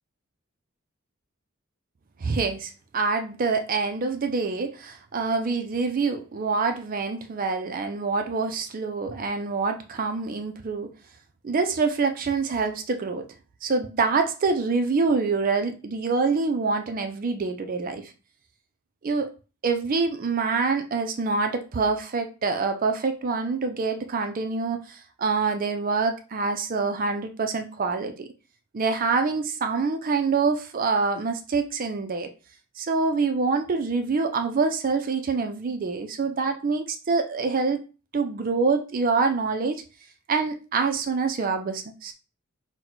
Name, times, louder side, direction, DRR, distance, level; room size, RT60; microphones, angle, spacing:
voice 1, 2.2-10.9 11.4-13.3 13.6-18.1 19.0-19.3 19.6-28.3 28.7-32.3 32.8-37.8 38.1-39.8 40.3-42.1, right 4 dB, 40° right, 7 dB, 0.4 m, -26 dB
4.0 x 2.1 x 4.4 m, 0.34 s
head